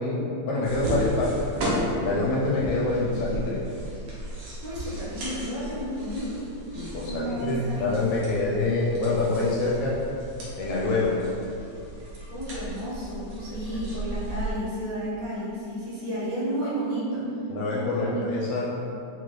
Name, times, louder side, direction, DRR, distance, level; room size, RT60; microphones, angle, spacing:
voice 1, 0.0-3.6 6.7-10.0 10.6-11.1 13.5-13.6 16.6-16.7 17.5-18.7, left 3 dB, 80° left, -5 dB, 1.7 m, -26 dB
sound 1, 0.6-14.5, right 1 dB, 90° right, 1.1 m, -35 dB
voice 2, 4.6-6.4 7.0-8.6 12.3-17.2 17.8-18.3, right 1 dB, 75° right, -7 dB, 1.8 m, -32 dB
5.6 x 2.1 x 3.1 m, 2.6 s
omnidirectional pair, 3.5 m